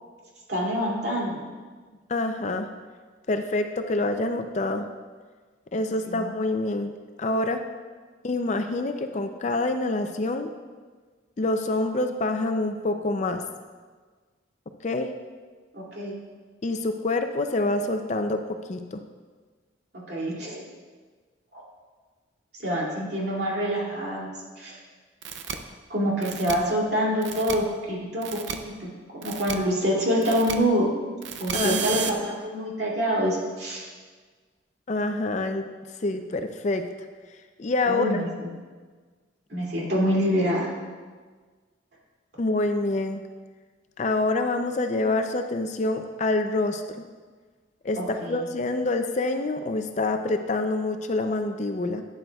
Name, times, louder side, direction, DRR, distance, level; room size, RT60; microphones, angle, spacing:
voice 1, 0.5-1.4 6.1-6.3 15.7-16.1 20.1-20.6 21.5-21.6 22.6-24.8 25.9-30.9 31.4-33.9 37.8-38.5 39.5-40.7 48.0-48.4, equal, 60° right, -4 dB, 2.5 m, -26 dB
voice 2, 2.1-2.7 3.3-4.9 5.7-6.9 7.2-7.6 8.2-10.5 11.4-13.4 14.8-15.1 16.6-19.0 31.5-31.8 34.9-35.7 36.0-36.8 37.6-38.3 42.4-43.2 44.0-46.8 47.8-52.0, left 2 dB, 40° left, 7 dB, 0.4 m, -26 dB
sound 1, 25.2-25.5 26.2-26.5 27.2-27.5 28.2-28.5 29.2-29.5 30.2-30.5 31.2-32.1, right 8 dB, 75° right, 0.6 m, -31 dB
12.0 x 9.2 x 2.3 m, 1.5 s
head